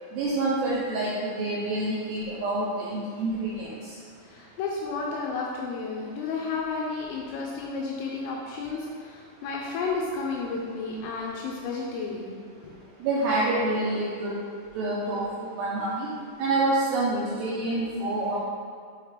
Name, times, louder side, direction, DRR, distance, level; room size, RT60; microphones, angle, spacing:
voice 1, 0.1-3.9 13.0-14.4 14.8-16.1 16.4-18.4, right 2 dB, 80° right, -7 dB, 2.5 m, -27 dB
voice 2, 4.2-12.4 12.6-12.7, left 4 dB, 85° left, -2 dB, 3.2 m, -32 dB
7.8 x 4.5 x 3.3 m, 2.1 s
omnidirectional pair, 5.8 m